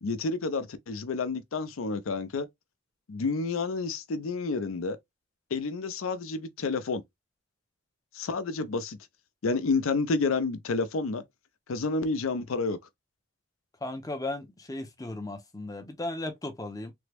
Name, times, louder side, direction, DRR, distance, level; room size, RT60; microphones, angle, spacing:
voice 1, 0.0-2.5 3.1-5.0 5.5-7.0 8.1-9.0 9.4-11.2 11.7-12.8, left 3 dB, 90° left, 0.5 m, -29 dB
voice 2, 13.8-16.9, left 2 dB, 15° left, 0.5 m, -36 dB
3.3 x 2.0 x 3.3 m
head